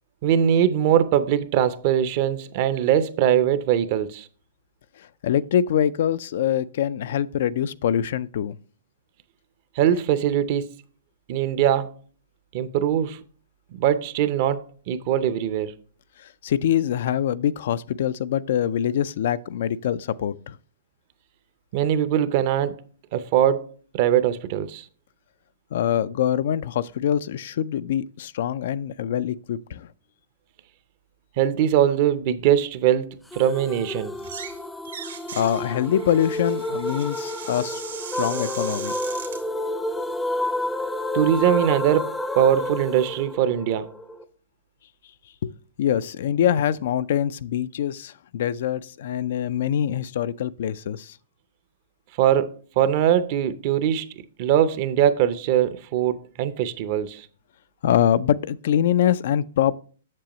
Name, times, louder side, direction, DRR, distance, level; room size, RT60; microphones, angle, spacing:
voice 1, 0.2-4.3 9.8-10.8 11.3-11.9 12.5-13.2 13.7-15.7 21.7-22.8 23.1-24.8 31.4-34.2 41.1-42.1 42.3-43.9 52.2-54.1 54.4-57.3, right 10 dB, 45° right, 0.6 m, -21 dB
voice 2, 5.0-8.6 16.2-20.6 25.7-29.9 35.3-37.8 38.2-38.9 45.4-51.2 57.8-59.8, left 10 dB, 60° left, 0.3 m, -24 dB
sound 1, 33.3-44.2, left 1 dB, 5° left, 0.5 m, -30 dB
sound 2, 34.1-34.6 34.8-39.4, right 7 dB, 80° right, 1.7 m, -39 dB
7.5 x 6.8 x 3.0 m
hypercardioid pair, 135°, 0 cm